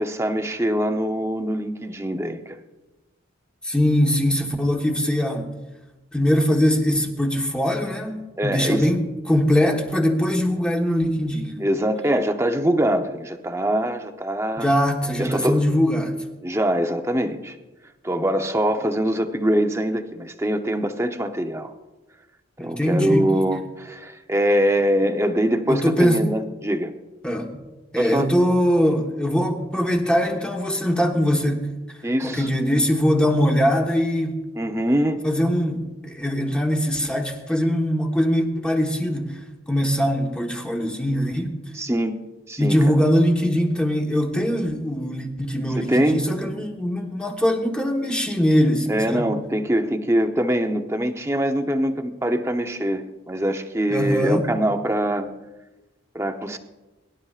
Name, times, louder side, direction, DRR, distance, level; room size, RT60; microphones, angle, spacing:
voice 1, 0.0-2.6 8.4-8.9 11.6-14.7 15.2-15.6 16.4-17.6 18.0-21.7 22.6-26.9 28.0-28.3 32.0-32.5 34.6-35.2 41.7-42.2 42.5-43.0 45.8-46.2 48.9-55.3 56.1-56.6, right 1 dB, 15° right, 6 dB, 0.7 m, -23 dB
voice 2, 3.6-5.5 6.1-9.0 9.3-11.6 14.6-16.2 22.6-23.3 25.7-26.2 27.2-27.5 27.9-31.7 32.2-34.4 35.2-39.4 39.7-41.5 42.6-49.2 53.9-54.5, equal, 5° left, 2 dB, 1.1 m, -21 dB
23.0 x 11.0 x 2.4 m, 1.1 s
head